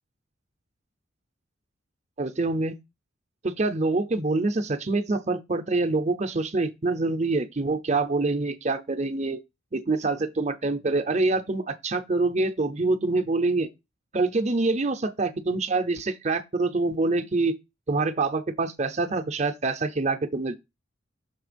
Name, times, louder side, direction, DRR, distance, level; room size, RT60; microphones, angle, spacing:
voice 1, 2.2-2.8 3.4-9.4 9.7-13.7 14.1-17.6 17.9-20.6, right 3 dB, 35° right, 0.7 m, -25 dB
6.1 x 3.4 x 5.0 m
head